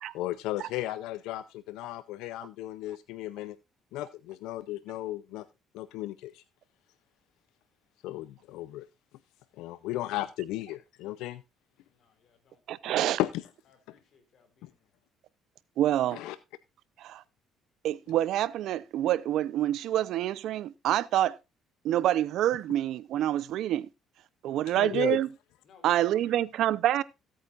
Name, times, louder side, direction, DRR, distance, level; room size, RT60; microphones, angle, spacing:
voice 1, 0.1-3.6 3.9-5.5 5.7-6.4 8.0-8.9 9.6-11.4 13.2-13.4 14.6-14.7 16.1-16.4 24.8-25.2, left 15 dB, 85° left, 0.6 m, -35 dB
voice 2, 11.9-12.6 13.9-14.8 25.7-26.5, left 6 dB, 60° left, 3.8 m, -59 dB
voice 3, 12.7-13.2 15.8-16.2 17.0-17.2 17.8-21.4 21.8-23.9 24.4-25.3 25.8-27.0, right 12 dB, 70° right, 0.6 m, -27 dB
16.5 x 8.6 x 2.5 m
cardioid pair, 105°, 0 cm